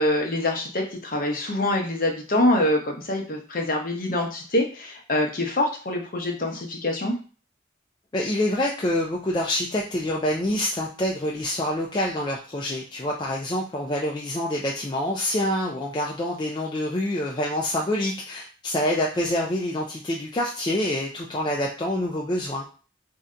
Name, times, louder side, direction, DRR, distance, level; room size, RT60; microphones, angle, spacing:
voice 1, 0.0-7.2, left 1 dB, 45° left, 2 dB, 0.7 m, -25 dB
voice 2, 8.1-22.6, left 1 dB, 25° left, -2 dB, 0.3 m, -26 dB
2.7 x 2.2 x 3.6 m, 0.37 s
head